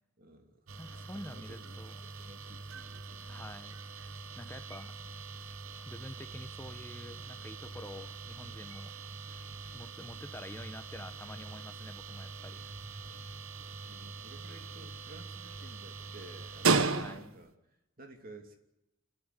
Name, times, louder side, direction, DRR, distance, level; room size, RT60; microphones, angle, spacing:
voice 1, 0.2-3.5 13.9-18.6, right 2 dB, 45° right, 5 dB, 2.9 m, -54 dB
sound 1, 0.7-17.5, right 4 dB, 80° right, 1.3 m, -38 dB
voice 2, 0.8-2.0 3.3-3.8 4.4-4.9 5.8-9.0 9.7-12.7 16.9-17.4, left 1 dB, 10° left, 8 dB, 1.2 m, -48 dB
27.5 x 13.0 x 8.5 m, 0.87 s
head